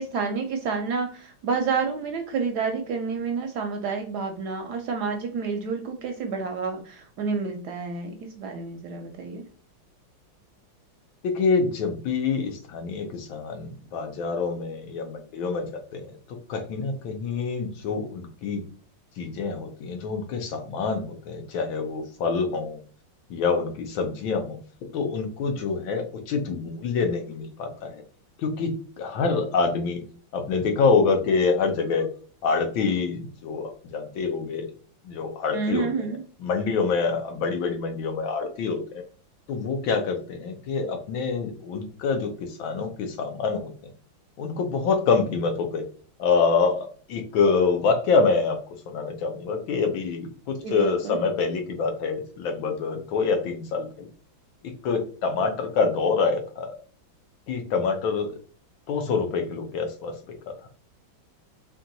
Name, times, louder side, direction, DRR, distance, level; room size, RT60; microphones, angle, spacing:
voice 1, 0.0-9.4 35.5-36.2 50.6-51.2, right 5 dB, 70° right, 5 dB, 1.0 m, -29 dB
voice 2, 11.2-18.6 19.2-22.8 23.3-28.0 28.4-30.0 30.3-32.1 32.4-34.7 35.0-35.9 36.4-39.0 39.5-43.9 44.4-45.8 46.2-48.6 48.9-54.1 54.8-56.7 57.5-58.3 58.9-60.2 60.5-60.6, left 4 dB, 80° left, 4 dB, 1.6 m, -26 dB
4.4 x 2.3 x 3.8 m, 0.42 s
omnidirectional pair, 2.1 m